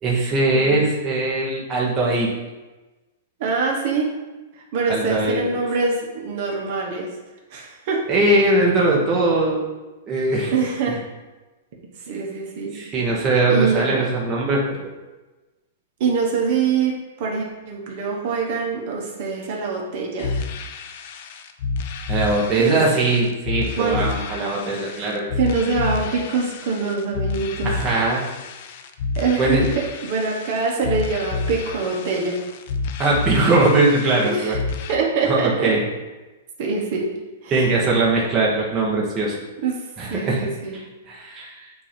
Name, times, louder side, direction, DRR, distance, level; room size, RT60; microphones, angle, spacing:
voice 1, 0.0-2.3 4.9-5.5 8.1-9.6 10.1-10.5 12.7-14.9 22.1-25.3 27.6-28.2 29.4-29.7 33.0-34.6 35.3-35.8 37.5-39.4 40.0-40.5 40.7-41.6, right 2 dB, 20° right, -4 dB, 1.2 m, -20 dB
voice 2, 3.4-4.1 4.7-7.1 7.5-8.0 10.5-11.0 12.1-12.7 13.5-14.1 16.0-20.3 22.6-22.8 23.8-24.1 25.4-27.8 29.2-32.4 34.3-34.6 34.9-35.7 36.6-37.1 37.4-37.7 39.6-39.8 40.1-40.8, right 4 dB, 50° right, -1 dB, 1.2 m, -24 dB
sound 1, 20.2-34.9, left 4 dB, 50° left, 0.6 m, -30 dB
8.4 x 2.8 x 5.2 m, 1.2 s
hypercardioid pair, 150°, 0 cm